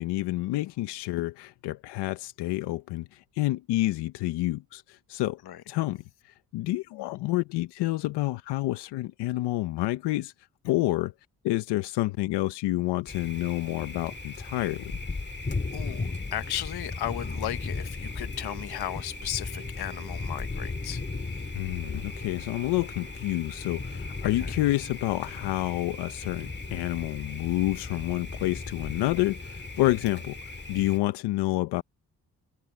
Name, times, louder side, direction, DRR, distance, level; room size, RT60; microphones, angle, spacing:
voice 1, 0.0-5.4 5.7-10.3 10.6-11.1 11.4-15.0 15.9-16.0 21.5-30.4 30.7-31.8, left 17 dB, 85° left, 0.9 m, -29 dB
Thunder, 13.1-31.0, left 3 dB, 25° left, 2.2 m, -36 dB
voice 2, 15.7-21.5 24.4-24.5, left 12 dB, 70° left, 1.2 m, -36 dB
sound 1, 18.0-26.7, right 3 dB, 15° right, 5.2 m, -54 dB
supercardioid pair, 55°, 40 cm